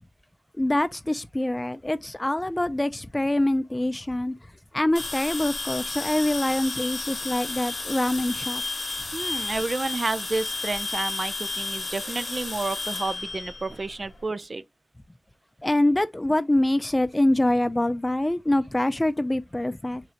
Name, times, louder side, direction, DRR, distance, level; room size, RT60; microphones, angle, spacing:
voice 1, 0.6-4.3 4.7-8.6 15.6-20.0, left 1 dB, 25° left, 0.4 m, -25 dB
sound 1, 5.0-14.2, left 3 dB, 70° left, 0.8 m, -32 dB
voice 2, 9.1-14.6, right 3 dB, 60° right, 0.3 m, -30 dB
3.7 x 3.1 x 2.5 m
cardioid pair, 45°, 0 cm